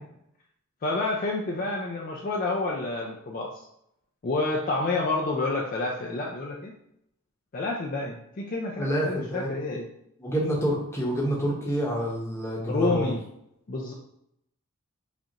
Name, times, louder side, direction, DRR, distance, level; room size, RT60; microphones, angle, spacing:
voice 1, 0.8-3.7 4.2-6.7 7.5-9.8 12.7-13.2 13.7-13.9, left 2 dB, 40° left, -2 dB, 0.4 m, -29 dB
voice 2, 8.8-9.5 10.2-13.1, equal, 10° left, -4 dB, 0.9 m, -28 dB
5.0 x 2.5 x 2.8 m, 0.77 s
head